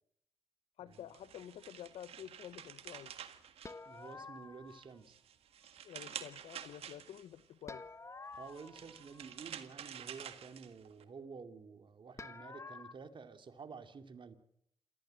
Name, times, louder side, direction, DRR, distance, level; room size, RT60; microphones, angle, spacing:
voice 1, 0.8-3.2 5.8-7.8, left 11 dB, 80° left, 15 dB, 0.8 m, -50 dB
sound 1, 0.9-4.3 4.7-7.4 8.3-11.0, right 9 dB, 75° right, 1.7 m, -49 dB
sound 2, 3.6-5.0 7.7-9.6 12.2-12.9, left 3 dB, 30° left, 1.2 m, -50 dB
voice 2, 3.9-5.2 8.4-14.4, right 5 dB, 55° right, 8 dB, 2.4 m, -51 dB
28.0 x 14.5 x 7.6 m, 0.72 s
supercardioid pair, 55°, 10 cm